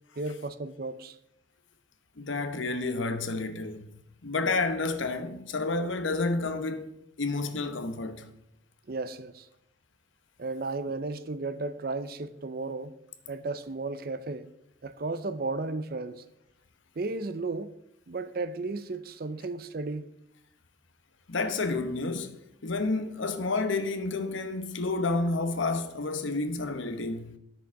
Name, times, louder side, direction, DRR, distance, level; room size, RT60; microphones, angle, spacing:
voice 1, 0.2-1.2 8.9-9.5 10.4-12.9 13.3-14.5 14.8-16.2 17.0-17.7 18.1-20.1, right 3 dB, 50° right, 0.5 m, -34 dB
voice 2, 2.2-3.9 4.2-6.9 7.2-8.2 21.3-22.4 22.6-27.3, left 3 dB, 80° left, 0.9 m, -30 dB
10.0 x 6.5 x 4.7 m
head